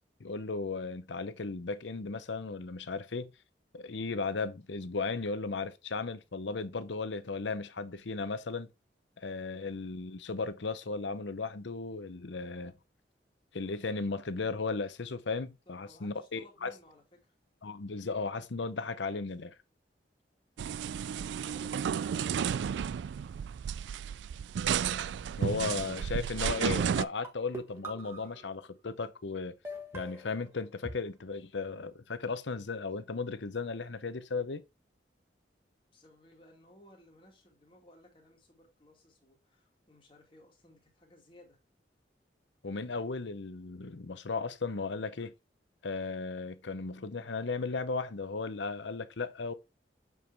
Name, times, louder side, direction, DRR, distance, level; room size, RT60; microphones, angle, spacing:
voice 1, 0.2-3.3 3.7-8.7 9.2-12.7 13.5-16.7 17.6-19.5 25.4-29.6 29.9-34.6 42.6-45.3 45.8-49.5, left 4 dB, 85° left, 0.7 m, -36 dB
voice 2, 9.5-9.9 15.7-17.3 21.0-22.5 25.4-26.8 35.9-41.6, left 1 dB, 30° left, 2.4 m, -60 dB
sound 1, 20.6-27.0, right 8 dB, 80° right, 0.3 m, -32 dB
sound 2, 27.2-28.7 29.6-30.9, equal, 15° right, 1.6 m, -44 dB
7.7 x 4.7 x 3.4 m
head